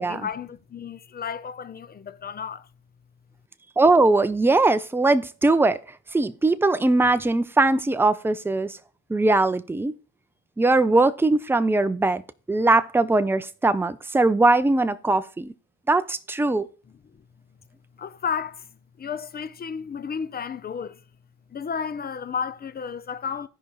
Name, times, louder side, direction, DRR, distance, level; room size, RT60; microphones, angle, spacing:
voice 1, 0.0-2.7 18.0-18.7 19.0-21.0 21.5-23.5, left 6 dB, 30° left, 0.7 m, -32 dB
voice 2, 3.8-5.8 6.1-8.8 9.1-9.9 10.6-12.2 12.5-15.5 15.9-16.7, right 2 dB, 5° right, 0.6 m, -20 dB
15.5 x 5.3 x 3.1 m
cardioid pair, 90°, 30 cm